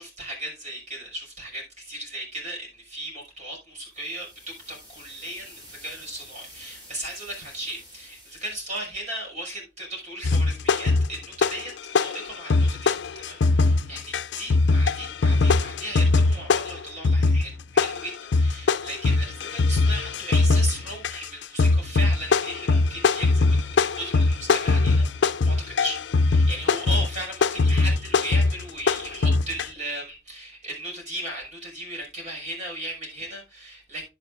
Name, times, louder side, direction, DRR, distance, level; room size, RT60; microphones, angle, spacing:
voice 1, 0.0-34.1, right 1 dB, 40° right, 5.7 m, -36 dB
sound 1, 3.8-8.9, equal, 25° right, 6.1 m, -49 dB
sound 2, 10.2-11.7 11.9-29.6, left 3 dB, 70° left, 0.5 m, -21 dB
10.5 x 9.3 x 2.5 m
head